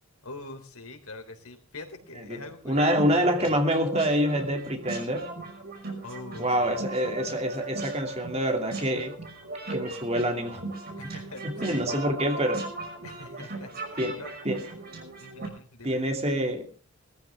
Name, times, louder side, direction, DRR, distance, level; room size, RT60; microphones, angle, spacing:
voice 1, 0.2-3.5 6.0-6.7 11.0-11.9 13.0-14.3 15.2-16.0, left 2 dB, 85° left, 5 dB, 3.6 m, -44 dB
voice 2, 2.6-5.3 6.4-9.1 9.7-10.6 11.4-12.7 14.0-14.6 15.8-16.7, equal, 30° right, 4 dB, 2.6 m, -26 dB
sound 1, 2.7-15.5, right 2 dB, 45° right, 5.8 m, -37 dB
20.5 x 14.5 x 3.6 m, 0.41 s
head